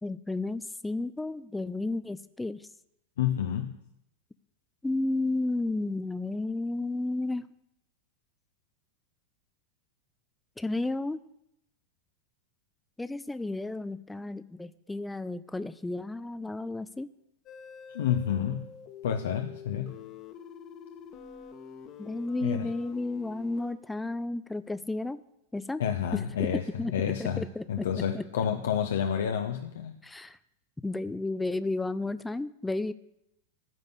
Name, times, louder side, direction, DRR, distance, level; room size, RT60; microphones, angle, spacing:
voice 1, 0.0-2.7 4.8-7.4 10.6-11.2 13.0-17.1 22.0-25.2 25.5-25.8 26.1-26.9 27.2-28.3 30.0-30.4 30.8-32.9, left 2 dB, 5° left, 14 dB, 0.5 m, -32 dB
voice 2, 3.2-3.7 17.9-18.7 19.0-19.9 22.4-22.7 25.8-26.6 26.9-29.9, left 9 dB, 60° left, 6 dB, 0.9 m, -29 dB
sound 1, 17.5-23.8, left 7 dB, 35° left, 1.3 m, -47 dB
15.0 x 5.3 x 8.4 m, 0.80 s
figure-of-eight pair, 90°, 0 cm